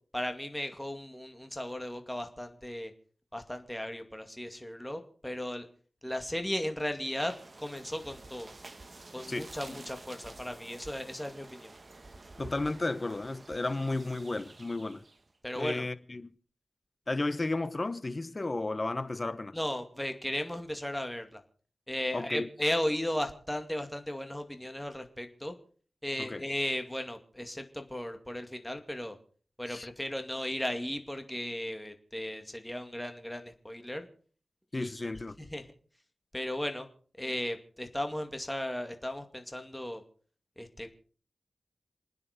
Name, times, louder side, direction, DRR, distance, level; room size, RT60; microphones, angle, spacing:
voice 1, 0.1-2.9 3.3-5.7 6.0-8.6 9.1-11.7 15.4-15.9 19.5-21.4 21.9-25.5 26.0-29.2 29.6-34.1 34.7-35.1 35.4-35.6 36.3-36.9 37.2-40.0 40.6-40.9, left 1 dB, 10° left, 2.3 m, -36 dB
sound 1, 6.9-15.3, right 2 dB, 40° right, 1.6 m, -50 dB
voice 2, 9.3-9.8 12.4-15.0 15.6-16.3 17.1-19.6 22.1-22.5 26.2-26.4 29.7-29.9 34.7-35.4, left 2 dB, 35° left, 1.0 m, -33 dB
28.0 x 9.8 x 5.1 m
wide cardioid pair, 90°, 0 cm